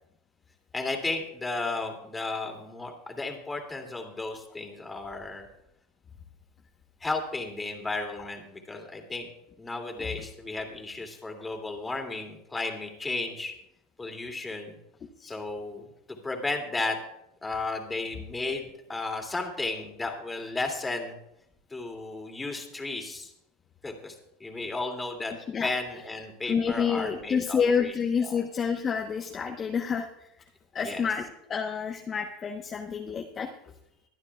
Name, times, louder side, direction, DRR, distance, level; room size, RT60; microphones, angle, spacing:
voice 1, 0.7-5.5 7.0-9.3 9.6-13.5 14.0-14.8 15.3-17.0 17.4-21.2 21.7-23.3 23.8-25.3 25.6-27.9 28.3-28.4 30.8-31.1, left 3 dB, 15° left, 3 dB, 2.5 m, -34 dB
voice 2, 26.5-30.1 30.7-33.5, left 6 dB, 30° left, 2 dB, 1.0 m, -29 dB
24.0 x 9.6 x 2.4 m, 0.81 s
supercardioid pair, 110°, 0 cm